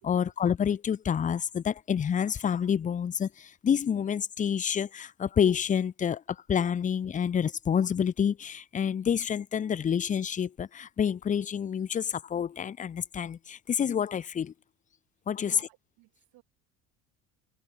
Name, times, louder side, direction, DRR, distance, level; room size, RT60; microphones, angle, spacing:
voice 1, 0.0-14.5 15.3-15.6, left 8 dB, 20° left, 0.5 m, -28 dB
voice 2, 15.4-16.4, right 20 dB, 70° right, 7.3 m, -57 dB
supercardioid pair, 85°, 37 cm